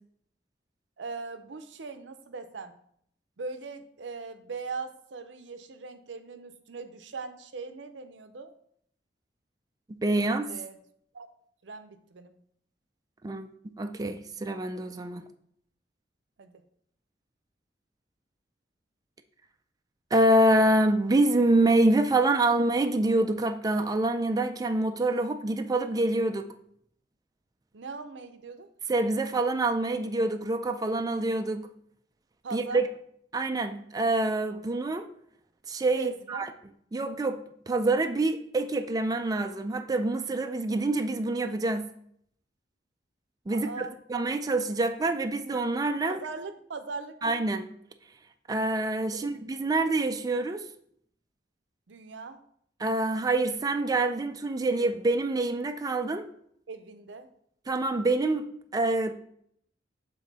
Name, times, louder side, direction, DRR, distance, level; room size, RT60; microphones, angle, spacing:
voice 1, 1.0-2.7 3.4-8.5 10.2-10.8 11.1-11.3 11.6-12.3 16.4-16.6 27.7-28.7 32.4-32.8 36.0-36.5 43.5-43.9 46.0-47.2 49.1-49.3 51.9-52.4 56.7-57.3, right 4 dB, 90° right, 9 dB, 0.6 m, -40 dB
voice 2, 9.9-10.5 13.2-15.2 20.1-26.5 28.9-31.7 32.5-32.9 33.3-35.1 35.7-36.5 36.9-37.4 37.7-41.9 43.5-43.7 44.1-46.2 47.2-47.7 48.5-50.6 52.8-56.3 57.7-59.1, right 2 dB, 20° right, 7 dB, 0.4 m, -26 dB
7.2 x 3.8 x 4.0 m, 0.67 s
head